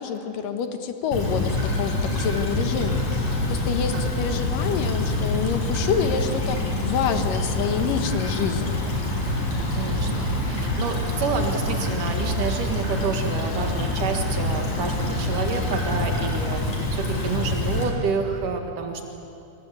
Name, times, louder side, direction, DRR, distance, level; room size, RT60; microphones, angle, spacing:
voice 1, 0.0-8.8, left 7 dB, 85° left, 7 dB, 3.0 m, -27 dB
Stream / Trickle dribble, 1.1-17.9, left 2 dB, 60° left, 5.5 m, -26 dB
voice 2, 9.8-19.0, right 5 dB, 75° right, 4 dB, 3.2 m, -29 dB
25.5 x 23.5 x 8.3 m, 2.6 s
omnidirectional pair, 3.7 m